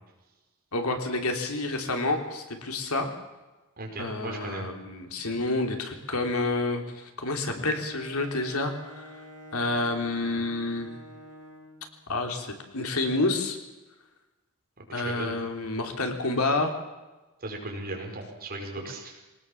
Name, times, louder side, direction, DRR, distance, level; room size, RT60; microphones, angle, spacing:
voice 1, 0.7-3.1 4.0-6.8 7.2-9.1 9.5-10.9 12.1-12.5 12.7-13.6 14.9-16.7, left 2 dB, 90° left, 4 dB, 3.4 m, -28 dB
voice 2, 3.8-4.7 14.8-15.4 17.4-19.2, right 2 dB, 45° right, 1 dB, 5.4 m, -37 dB
Bowed string instrument, 7.7-11.9, equal, 15° right, 6.9 m, -47 dB
22.5 x 19.0 x 7.2 m, 1.1 s
head